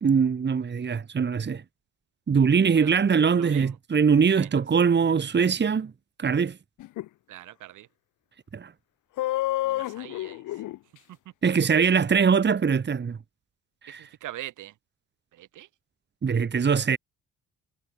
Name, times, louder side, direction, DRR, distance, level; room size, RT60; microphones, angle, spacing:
voice 1, 0.0-1.6 2.3-5.9 6.2-6.6 8.5-8.7 11.4-13.2 13.8-14.1 16.2-17.0, right 6 dB, 35° right, 2.1 m, -22 dB
voice 2, 3.4-3.7 4.4-4.5 7.3-7.9 9.6-10.4 14.2-14.7 15.4-15.7, right 14 dB, 85° right, 4.2 m, -41 dB
sound 1, 6.8-7.1 9.2-10.8, left 15 dB, 90° left, 5.3 m, -29 dB
cardioid pair, 90°, 30 cm